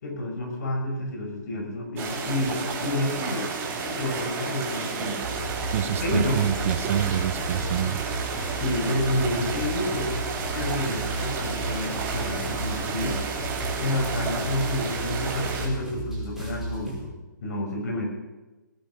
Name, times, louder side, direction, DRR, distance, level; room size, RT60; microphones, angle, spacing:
voice 1, 0.0-3.5 3.8-5.2 6.0-6.4 8.5-10.2 10.5-13.2 13.8-17.1 17.4-18.1, left 1 dB, 55° left, 2 dB, 6.3 m, -29 dB
sound 1, 2.0-15.7, right 5 dB, 20° right, 3.4 m, -32 dB
voice 2, 4.9-5.2 5.7-8.0, right 10 dB, 45° right, 13 dB, 0.8 m, -27 dB
sound 2, 5.2-17.0, right 2 dB, ahead, 5.5 m, -34 dB
19.5 x 11.0 x 6.5 m, 1.1 s
hypercardioid pair, 140°, 11 cm